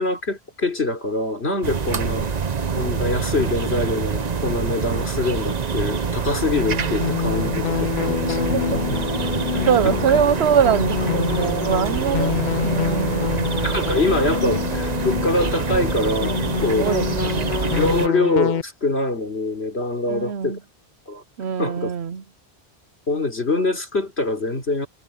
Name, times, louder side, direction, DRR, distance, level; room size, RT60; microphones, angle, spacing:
voice 1, 0.0-2.3 2.8-8.4 8.9-9.0 9.8-9.9 13.6-16.9 17.6-20.6 21.1-21.2 21.6-21.9 23.1-24.9, left 2 dB, 85° left, 4.3 m, -24 dB
sound 1, 1.6-18.1, right 5 dB, 45° right, 0.9 m, -26 dB
sound 2, 6.6-18.6, left 8 dB, 55° left, 0.6 m, -26 dB
voice 2, 9.7-12.3 12.6-13.5 16.8-17.8 20.1-20.6 21.4-22.2, right 8 dB, 90° right, 1.1 m, -23 dB
omnidirectional pair, 1.1 m